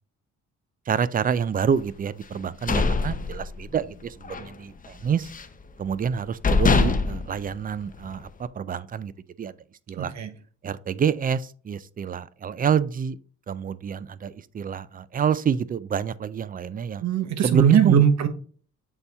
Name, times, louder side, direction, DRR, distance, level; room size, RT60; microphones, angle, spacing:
voice 1, 0.9-5.3 5.8-9.1 9.4-9.5 9.9-10.1 10.6-13.2 13.5-17.0 17.4-18.0, right 7 dB, 30° right, 0.4 m, -27 dB
sound 1, 2.3-3.9 4.2-4.5 4.8-5.6 6.1-6.2 6.4-8.3, left 4 dB, 25° left, 0.7 m, -24 dB
voice 2, 10.0-10.3 17.0-18.3, right 8 dB, 65° right, 1.1 m, -20 dB
7.1 x 4.1 x 3.5 m
cardioid pair, 90°, 30 cm